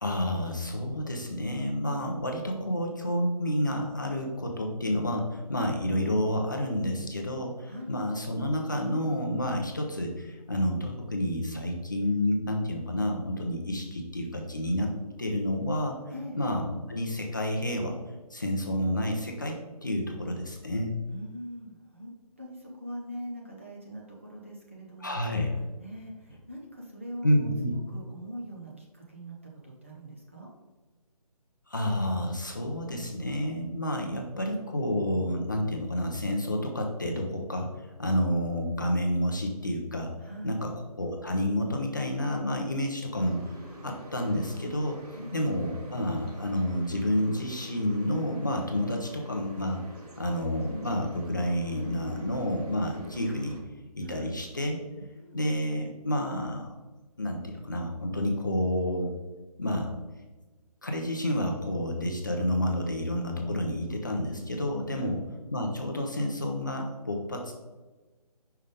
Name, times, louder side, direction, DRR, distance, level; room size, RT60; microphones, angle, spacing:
voice 1, 0.0-14.9 15.2-16.0 16.4-18.0 18.3-20.9 25.0-25.5 27.2-27.7 31.7-40.1 40.4-43.4 43.8-45.0 45.3-49.8 50.2-53.6 54.0-54.8 55.3-56.7 57.2-59.1 59.6-59.9 60.8-65.2 65.5-67.5, left 1 dB, 30° left, 1 dB, 0.6 m, -29 dB
voice 2, 7.6-8.0 16.1-16.4 21.1-22.1 22.4-25.2 25.8-29.4 29.6-30.5 40.2-40.6 45.2-45.4 54.0-54.4 55.0-55.5 64.9-65.2, equal, 20° right, -2 dB, 0.6 m, -42 dB
sound 1, 43.1-53.6, right 1 dB, 75° right, 1.8 m, -48 dB
5.5 x 3.4 x 5.1 m, 1.2 s
hypercardioid pair, 180°, 20 cm